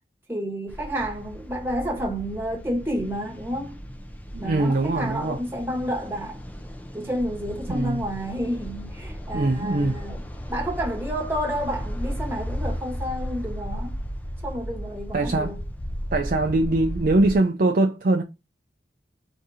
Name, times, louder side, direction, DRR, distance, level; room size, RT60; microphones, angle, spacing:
voice 1, 0.3-3.8 4.4-6.4 6.9-10.2 10.5-13.9 14.4-15.6, equal, 10° right, 1.3 m, -30 dB
sound 1, 0.7-17.4, equal, 10° left, 0.6 m, -35 dB
voice 2, 4.3-5.4 7.7-8.0 9.3-10.0 15.1-15.5 16.1-18.2, right 2 dB, 50° right, 0.5 m, -22 dB
4.0 x 2.8 x 4.7 m
head